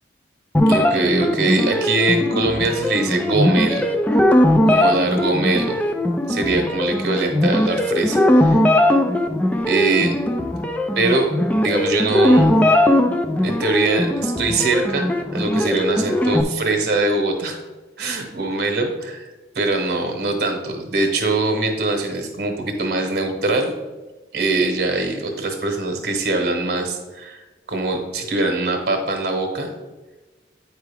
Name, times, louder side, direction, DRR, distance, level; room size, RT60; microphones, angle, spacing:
sound 1, 0.5-16.4, left 1 dB, 10° left, 0.3 m, -19 dB
voice 1, 0.7-3.9 4.7-5.8 6.3-8.6 9.7-10.1 11.0-11.3 11.6-12.5 13.4-17.6 18.0-18.9 19.2-23.7 24.3-29.7, right 2 dB, 55° right, 3 dB, 1.0 m, -22 dB
9.0 x 4.7 x 3.4 m, 1.2 s
head